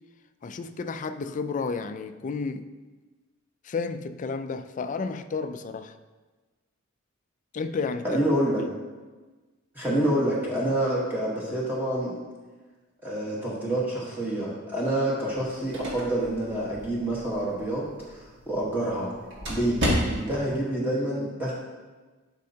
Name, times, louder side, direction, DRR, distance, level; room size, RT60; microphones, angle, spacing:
voice 1, 0.4-2.7 3.6-6.0 7.5-8.2 8.6-8.7, left 4 dB, 35° left, 0.4 m, -32 dB
voice 2, 8.0-8.6 9.7-12.2 13.0-19.1 19.5-19.8 20.1-21.5, right 1 dB, 10° right, 1.3 m, -27 dB
sound 1, 15.3-20.5, equal, 60° right, 1.8 m, -33 dB
12.0 x 5.4 x 2.8 m
head